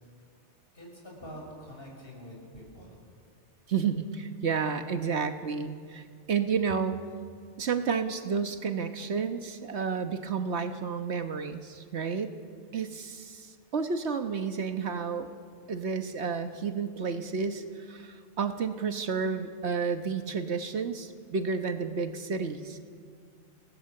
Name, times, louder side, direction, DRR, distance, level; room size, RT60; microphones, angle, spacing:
voice 1, 0.7-3.0, equal, 55° left, -1 dB, 6.8 m, -45 dB
voice 2, 3.7-7.0 7.6-12.3 12.7-15.3 15.7-22.8, right 5 dB, 70° right, 8 dB, 1.4 m, -31 dB
28.0 x 18.0 x 7.8 m, 2.2 s
omnidirectional pair, 1.2 m